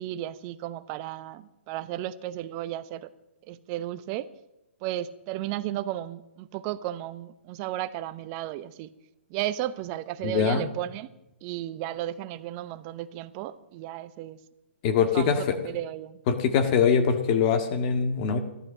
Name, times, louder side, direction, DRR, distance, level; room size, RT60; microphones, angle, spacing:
voice 1, 0.0-3.1 3.5-4.3 4.8-8.9 9.3-11.1 11.4-14.4 15.1-16.2, right 13 dB, 35° right, 14 dB, 0.8 m, -34 dB
voice 2, 10.2-10.6 14.8-15.6 16.3-18.4, left 6 dB, 40° left, 7 dB, 1.8 m, -23 dB
14.0 x 12.0 x 6.7 m, 0.92 s
hypercardioid pair, 130°, 7 cm